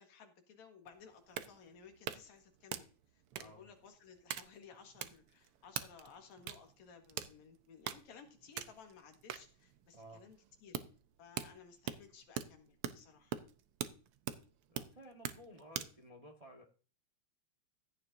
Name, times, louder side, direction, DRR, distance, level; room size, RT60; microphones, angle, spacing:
voice 1, 0.0-10.8 11.2-13.4, left 6 dB, 75° left, 4 dB, 3.0 m, -58 dB
sound 1, 0.9-16.0, right 10 dB, 75° right, 1.3 m, -44 dB
voice 2, 14.7-16.6, equal, 25° right, 2 dB, 0.7 m, -55 dB
15.5 x 10.0 x 2.6 m, 0.38 s
omnidirectional pair, 3.3 m